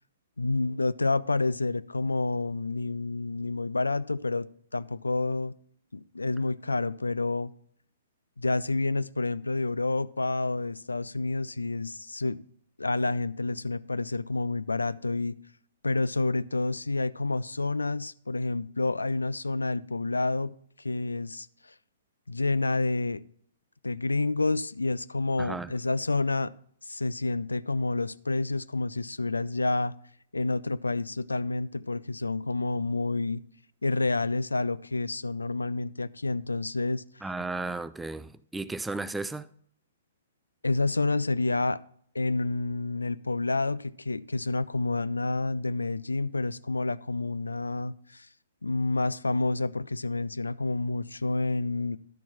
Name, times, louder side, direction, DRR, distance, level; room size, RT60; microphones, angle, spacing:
voice 1, 0.4-5.5 5.9-7.5 8.4-12.4 12.8-15.4 15.8-21.5 22.3-23.2 23.8-26.5 26.8-29.9 30.3-33.4 33.8-37.0 40.6-41.8 42.1-48.3 48.6-52.0, left 3 dB, 80° left, 0.4 m, -29 dB
voice 2, 25.4-25.7 37.2-39.5, right 3 dB, 5° right, 0.3 m, -34 dB
11.5 x 4.5 x 5.6 m
figure-of-eight pair, 120°, 0 cm